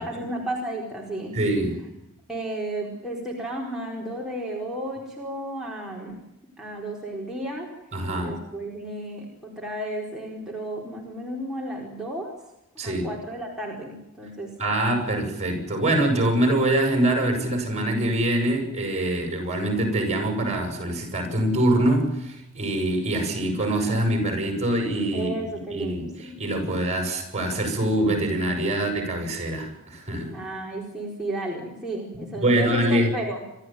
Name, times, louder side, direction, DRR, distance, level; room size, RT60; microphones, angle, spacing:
voice 1, 0.0-1.4 2.3-6.1 6.6-7.7 8.2-12.3 12.8-14.5 25.1-26.4 30.3-33.4, right 1 dB, ahead, -4 dB, 4.7 m, -33 dB
voice 2, 1.3-1.8 7.9-8.3 12.8-13.0 14.6-26.0 26.4-30.3 32.4-33.1, right 1 dB, 30° right, 4 dB, 7.8 m, -24 dB
28.0 x 14.0 x 9.4 m, 0.87 s
head